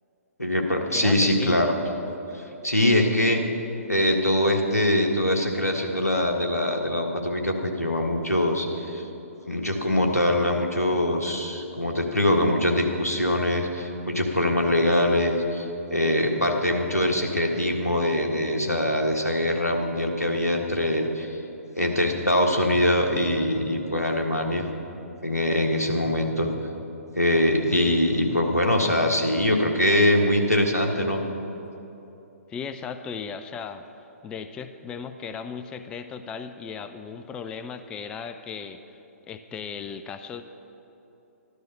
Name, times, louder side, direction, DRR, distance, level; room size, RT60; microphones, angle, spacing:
voice 1, 0.4-1.8 2.3-3.4 3.9-9.0 9.5-21.4 21.8-24.7 25.2-26.5 27.1-31.2, left 1 dB, 85° left, 2 dB, 1.6 m, -23 dB
voice 2, 0.9-1.7 27.8-28.0 32.5-33.8 34.2-39.0 39.3-40.4, left 6 dB, 10° left, 9 dB, 0.3 m, -36 dB
13.0 x 12.0 x 5.6 m, 3.0 s
figure-of-eight pair, 125°, 8 cm